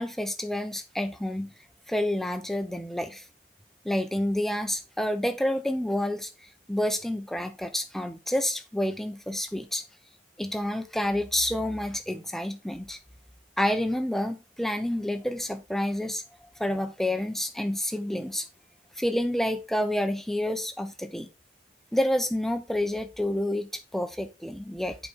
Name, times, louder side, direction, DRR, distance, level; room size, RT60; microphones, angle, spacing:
voice 1, 0.0-1.5 1.9-3.2 3.8-9.8 10.4-13.0 13.6-16.2 16.6-18.5 19.0-21.3 21.9-25.0, left 1 dB, ahead, 0.8 m, -29 dB
7.6 x 5.0 x 4.1 m
head